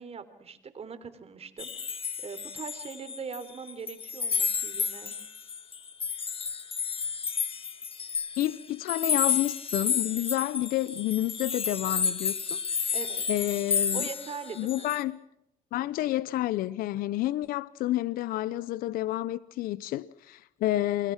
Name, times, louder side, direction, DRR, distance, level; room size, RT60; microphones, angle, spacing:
voice 1, 0.0-5.1 12.9-13.2 13.9-14.9, right 5 dB, 45° right, 3.6 m, -41 dB
sound 1, 1.6-3.4 3.7-15.0, left 6 dB, 40° left, 1.9 m, -31 dB
voice 2, 8.4-12.6 13.3-14.0 14.6-15.2 15.7-21.1, left 15 dB, 75° left, 0.8 m, -29 dB
28.5 x 22.0 x 6.1 m
supercardioid pair, 80°, 15 cm